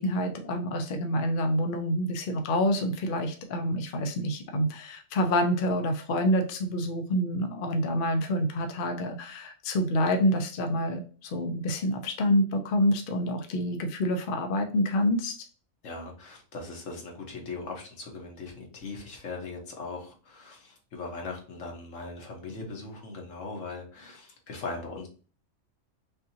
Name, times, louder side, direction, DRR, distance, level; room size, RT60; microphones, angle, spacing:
voice 1, 0.0-15.3, equal, 50° left, 4 dB, 0.7 m, -27 dB
voice 2, 15.8-25.1, left 3 dB, 75° left, 1 dB, 1.6 m, -39 dB
5.5 x 2.7 x 2.7 m, 0.37 s
omnidirectional pair, 1.3 m